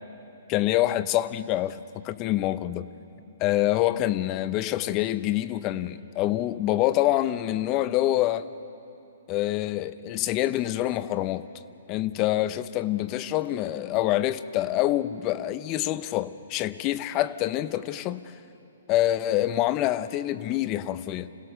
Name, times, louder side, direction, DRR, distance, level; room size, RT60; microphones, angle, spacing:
voice 1, 0.5-2.9 3.4-8.5 9.3-11.5 11.9-18.3 18.9-21.3, left 14 dB, 30° left, 0.7 m, -26 dB
27.0 x 16.5 x 6.7 m
hypercardioid pair, 135°, 0 cm